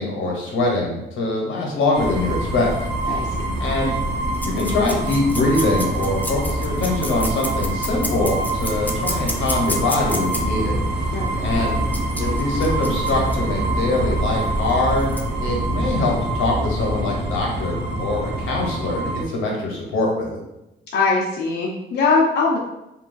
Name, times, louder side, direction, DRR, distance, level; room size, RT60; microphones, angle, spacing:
voice 1, 0.0-2.7 3.1-3.2 3.6-4.0 4.4-10.8 11.4-11.8 12.2-15.1 15.4-20.4, left 2 dB, 85° left, -2 dB, 0.8 m, -23 dB
sound 1, 1.9-19.2, right 1 dB, 65° right, 0.5 m, -25 dB
voice 2, 3.1-3.6 11.1-11.3 20.9-22.6, left 4 dB, 60° left, -4 dB, 0.5 m, -21 dB
sound 2, 4.3-10.4 11.9-13.4 14.7-14.8 15.0-15.2, left 2 dB, 10° left, 0.3 m, -31 dB
3.0 x 2.2 x 2.5 m, 0.92 s
cardioid pair, 90°, 20 cm